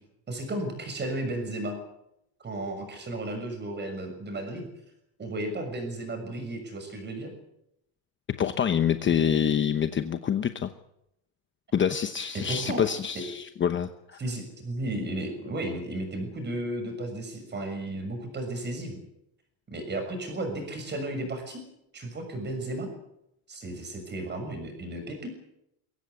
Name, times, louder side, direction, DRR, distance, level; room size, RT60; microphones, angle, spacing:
voice 1, 0.3-1.8 2.4-4.7 5.2-7.3 12.3-12.8 14.2-19.0 19.7-21.6 21.9-22.9 23.5-25.3, right 1 dB, 20° right, 6 dB, 6.6 m, -34 dB
voice 2, 8.4-10.7 11.7-14.2, left 8 dB, 25° left, 9 dB, 1.0 m, -26 dB
23.0 x 16.5 x 8.4 m, 0.80 s
cardioid pair, 160°, 47 cm